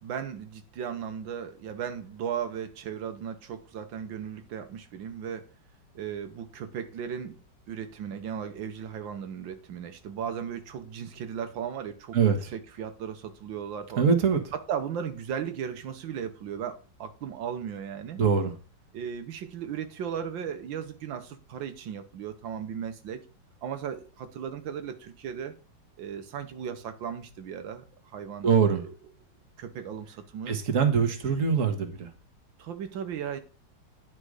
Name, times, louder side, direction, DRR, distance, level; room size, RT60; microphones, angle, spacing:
voice 1, 0.0-5.5 5.9-7.4 7.7-14.0 14.5-18.2 18.9-23.2 23.6-25.5 26.0-28.9 29.6-30.6 32.6-33.4, right 8 dB, 85° right, 1.7 m, -36 dB
voice 2, 12.1-12.5 14.0-14.4 18.2-18.5 28.4-28.8 30.5-32.1, right 6 dB, 45° right, 1.7 m, -23 dB
9.9 x 5.3 x 4.8 m
omnidirectional pair, 2.0 m